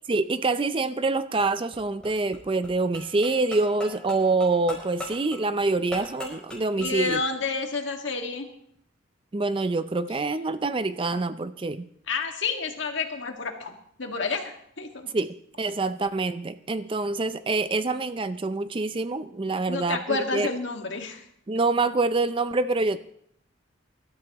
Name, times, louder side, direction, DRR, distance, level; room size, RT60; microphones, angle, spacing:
voice 1, 0.1-7.2 9.3-11.9 15.1-20.5 21.5-23.0, right 3 dB, 25° right, 12 dB, 0.4 m, -26 dB
sound 1, 1.2-7.2, left 1 dB, 5° left, 5.1 m, -41 dB
voice 2, 6.8-8.5 12.1-15.1 19.7-21.2, left 4 dB, 65° left, 3 dB, 1.9 m, -30 dB
24.5 x 13.0 x 3.0 m, 0.70 s
head